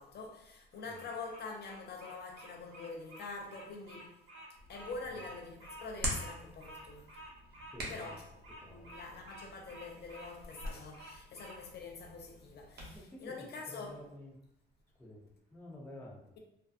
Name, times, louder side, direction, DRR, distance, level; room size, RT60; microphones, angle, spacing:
voice 1, 0.0-4.2 4.7-7.1 7.9-8.2 8.7-14.0, left 3 dB, 55° left, 0.6 m, -45 dB
Bird vocalization bird call bird song, 0.7-11.6, right 1 dB, 75° right, 1.0 m, -51 dB
Hands, 4.5-13.0, right 1 dB, 55° right, 0.8 m, -45 dB
voice 2, 7.7-8.2 8.6-8.9 12.9-14.4 15.0-16.2, left 1 dB, 10° left, 0.7 m, -51 dB
2.5 x 2.3 x 2.4 m
cardioid pair, 90°, 20 cm